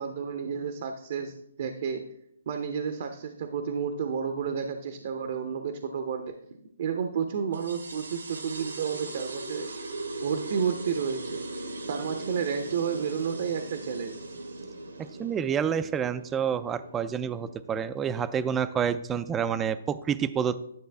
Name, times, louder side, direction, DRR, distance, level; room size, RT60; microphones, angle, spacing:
voice 1, 0.0-2.0 2.5-6.3 6.8-9.7 10.2-11.4 11.9-14.2, right 6 dB, 50° right, 7 dB, 0.7 m, -31 dB
sound 1, 7.5-18.6, right 2 dB, 90° right, 1.7 m, -39 dB
voice 2, 15.0-20.6, right 8 dB, 15° right, 14 dB, 0.4 m, -28 dB
10.5 x 6.3 x 3.4 m, 0.76 s
hypercardioid pair, 150°, 0 cm